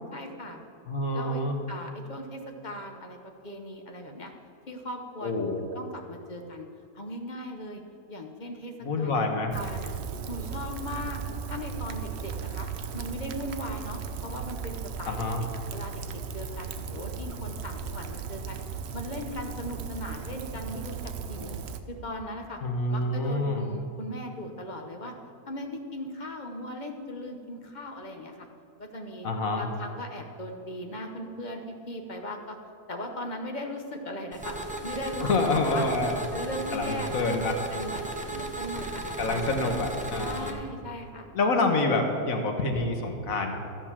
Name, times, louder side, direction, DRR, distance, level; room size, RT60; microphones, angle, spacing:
voice 1, 0.1-0.6 1.1-3.2 3.4-4.3 4.7-6.7 6.9-7.8 8.1-9.9 10.3-11.2 11.5-12.7 12.9-16.0 16.3-18.6 18.9-21.0 21.3-21.6 21.9-22.6 22.9-25.1 25.5-28.5 28.8-29.3 29.6-32.6 32.9-34.6 34.8-35.5 35.7-35.8 36.3-39.7 40.2-41.3, left 1 dB, 35° left, 3 dB, 0.9 m, -38 dB
voice 2, 0.9-1.6 5.2-5.6 8.8-9.5 15.1-15.4 22.6-23.6 29.2-29.7 35.3-36.2 36.7-37.5 39.2-40.5 41.3-43.5, left 2 dB, 60° left, 3 dB, 1.5 m, -27 dB
Rain, 9.5-21.8, right 6 dB, 60° right, 0.7 m, -36 dB
sound 1, 34.3-40.5, right 2 dB, 10° right, 0.4 m, -35 dB
13.5 x 5.2 x 7.3 m, 2.6 s
omnidirectional pair, 1.7 m